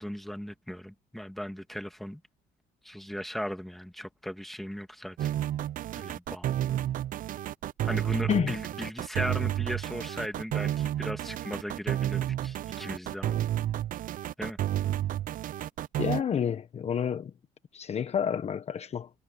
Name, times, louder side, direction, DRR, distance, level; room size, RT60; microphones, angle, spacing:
voice 1, 0.0-2.2 2.8-5.3 6.0-6.6 7.8-13.4 14.4-14.6, equal, ahead, 2.6 m, -37 dB
sound 1, 5.2-16.2, right 12 dB, 55° right, 0.5 m, -31 dB
voice 2, 16.0-17.3 17.7-19.1, left 8 dB, 40° left, 1.0 m, -29 dB
cardioid pair, 110°, 17 cm